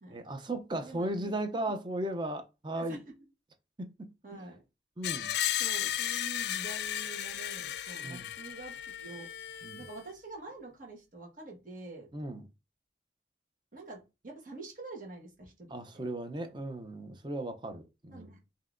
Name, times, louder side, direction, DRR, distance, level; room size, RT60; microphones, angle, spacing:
voice 1, 0.1-3.0 3.8-4.4 5.0-5.3 8.0-8.3 9.6-9.8 12.1-12.4 15.7-18.3, right 1 dB, 25° right, 0.6 m, -36 dB
voice 2, 0.8-1.3 2.8-3.0 4.2-4.6 5.6-9.3 9.8-12.1 13.7-16.1 18.1-18.4, right 2 dB, 45° right, 1.4 m, -46 dB
Screech, 5.0-10.0, left 11 dB, 65° left, 0.3 m, -35 dB
5.4 x 2.8 x 2.5 m
head